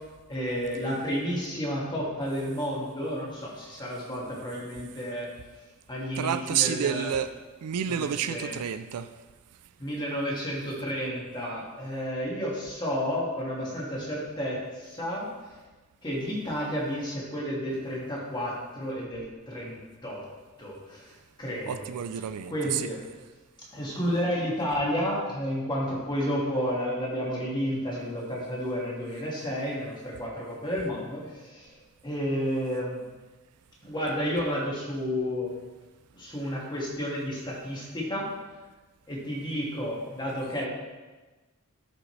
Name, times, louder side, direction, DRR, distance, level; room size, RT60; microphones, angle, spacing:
voice 1, 0.3-5.3 5.9-7.1 7.9-8.6 9.8-15.3 16.0-20.2 20.6-21.1 21.4-21.9 22.5-23.0 23.7-31.8 32.0-33.0 33.8-35.6 36.1-38.3 39.1-40.7, equal, 20° left, -4 dB, 2.0 m, -31 dB
voice 2, 6.2-7.3 7.6-9.1 21.7-22.9, right 9 dB, 80° right, 11 dB, 0.4 m, -29 dB
12.0 x 5.2 x 3.2 m, 1.2 s
head